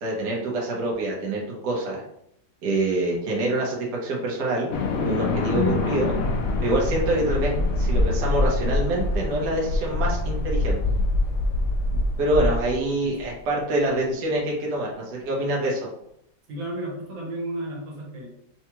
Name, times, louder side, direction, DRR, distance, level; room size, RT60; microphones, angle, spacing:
voice 1, 0.0-2.0 2.6-4.7 5.0-6.2 6.6-10.8 12.2-15.9, right 1 dB, 65° right, -3 dB, 1.4 m, -26 dB
sound 1, 4.7-13.2, left 2 dB, 75° left, 0.7 m, -24 dB
voice 2, 13.0-13.3 16.5-18.3, right 1 dB, 80° right, -2 dB, 1.8 m, -33 dB
5.5 x 2.3 x 3.0 m, 0.75 s
omnidirectional pair, 2.0 m